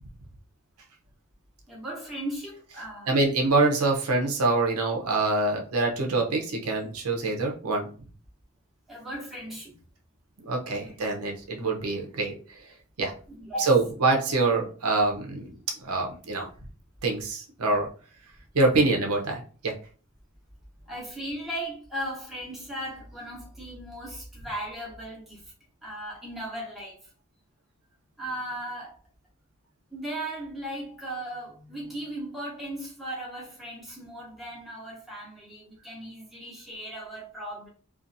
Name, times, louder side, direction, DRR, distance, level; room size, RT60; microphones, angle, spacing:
voice 1, 1.7-3.2 8.9-9.7 10.7-11.0 13.3-13.7 20.8-25.4 25.8-27.1 28.2-29.0 29.9-37.7, right 1 dB, ahead, 0.9 m, -37 dB
voice 2, 3.1-7.9 10.5-12.6 13.0-13.1 13.6-15.6 15.8-16.5 17.0-17.9 18.5-19.7, right 3 dB, 80° right, 0.6 m, -25 dB
2.6 x 2.4 x 2.5 m
head